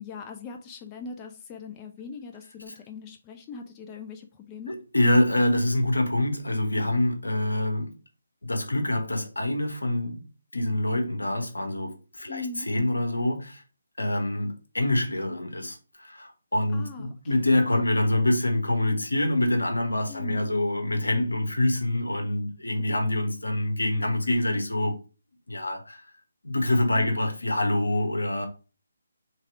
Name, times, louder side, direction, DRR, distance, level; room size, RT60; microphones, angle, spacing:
voice 1, 0.0-4.7 12.3-12.7 16.7-17.1 20.1-20.4 27.0-27.1, left 5 dB, 20° left, 0.4 m, -40 dB
voice 2, 4.7-7.9 8.4-10.2 10.5-13.6 14.0-25.0 25.5-26.1 26.4-28.5, left 1 dB, 80° left, 1.2 m, -26 dB
3.4 x 3.3 x 4.5 m
figure-of-eight pair, 145°, 0 cm